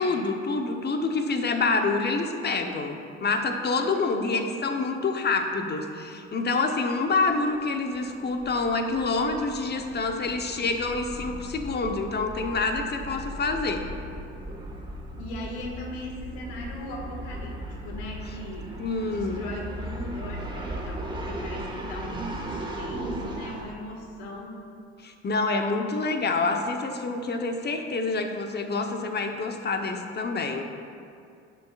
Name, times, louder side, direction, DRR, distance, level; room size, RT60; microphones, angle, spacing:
voice 1, 0.0-13.8 18.8-19.4 25.0-30.6, left 3 dB, 30° left, 5 dB, 1.0 m, -27 dB
voice 2, 3.8-4.5 15.2-18.8 19.0-24.7, left 1 dB, 75° left, 0 dB, 1.9 m, -38 dB
sound 1, 7.1-7.3 7.5-7.6 8.0-23.6, right 1 dB, 15° right, 1.7 m, -37 dB
17.5 x 6.6 x 2.5 m, 2.4 s
hypercardioid pair, 60°, 34 cm